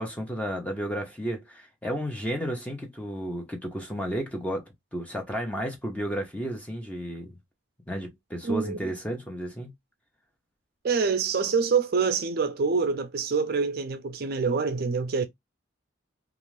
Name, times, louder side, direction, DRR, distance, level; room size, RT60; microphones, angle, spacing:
voice 1, 0.0-4.6 4.9-7.4 7.9-9.7, equal, 5° left, 0.6 m, -32 dB
voice 2, 8.4-8.9 10.8-15.2, right 5 dB, 50° right, 0.4 m, -26 dB
2.4 x 2.4 x 3.1 m
head